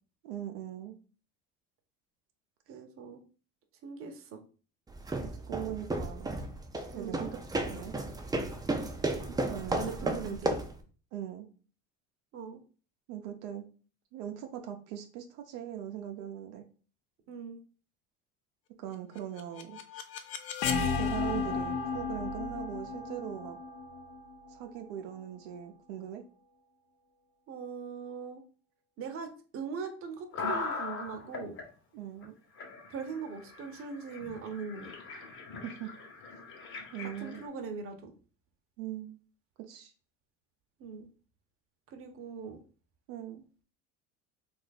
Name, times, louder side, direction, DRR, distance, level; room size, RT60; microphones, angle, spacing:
voice 1, 0.2-1.0 5.2-6.4 6.9-8.0 9.5-10.6 11.1-11.5 13.1-13.7 14.1-16.6 18.8-19.8 20.9-23.6 24.5-26.2 31.9-32.4 35.6-35.9 36.9-37.4 38.8-39.2 39.7-39.9 43.1-43.4, right 11 dB, 85° right, 4 dB, 0.7 m, -40 dB
voice 2, 2.7-3.2 3.8-4.4 5.7-5.8 6.9-7.2 9.7-10.6 12.3-12.6 17.3-17.6 27.5-28.4 29.0-31.6 32.9-34.9 37.0-38.1 40.8-41.1 41.9-42.6, right 5 dB, 40° right, 5 dB, 0.8 m, -40 dB
sound 1, 4.9-10.8, right 2 dB, 10° right, 0.4 m, -34 dB
sound 2, 19.2-25.0, left 5 dB, 65° left, 0.7 m, -34 dB
sound 3, 30.3-31.6 32.2-32.3 32.6-37.5, left 4 dB, 35° left, 1.0 m, -40 dB
2.8 x 2.5 x 4.0 m, 0.38 s
supercardioid pair, 110°, 33 cm